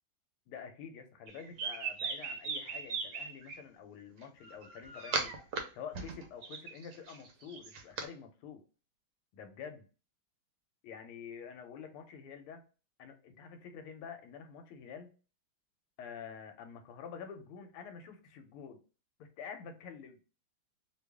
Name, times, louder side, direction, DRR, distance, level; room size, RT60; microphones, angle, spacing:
voice 1, 0.5-5.3 5.7-8.6 9.3-9.9 10.8-12.6 13.0-15.1 16.0-18.8 19.2-20.2, left 7 dB, 90° left, 7 dB, 1.5 m, -48 dB
sound 1, 1.3-3.6 4.4-5.6 5.9-8.1, right 5 dB, 70° right, 1.1 m, -38 dB
3.3 x 2.3 x 3.4 m, 0.35 s
omnidirectional pair, 2.3 m